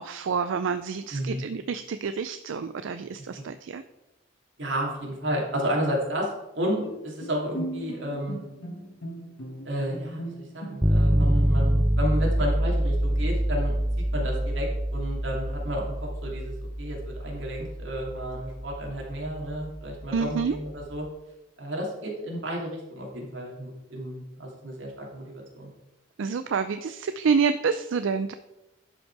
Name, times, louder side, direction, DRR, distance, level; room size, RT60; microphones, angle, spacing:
voice 1, 0.0-3.8 20.1-20.6 26.2-28.3, right 5 dB, 90° right, 11 dB, 0.4 m, -28 dB
voice 2, 1.1-1.5 4.6-6.3 6.5-8.4 9.6-13.7 14.1-21.1 21.6-25.7, equal, 70° right, -2 dB, 2.7 m, -32 dB
Bowed string instrument, 6.8-11.7, right 1 dB, 85° left, 1.5 m, -38 dB
sound 1, 10.8-20.7, equal, 5° right, 0.4 m, -26 dB
11.5 x 5.4 x 4.6 m, 0.96 s
head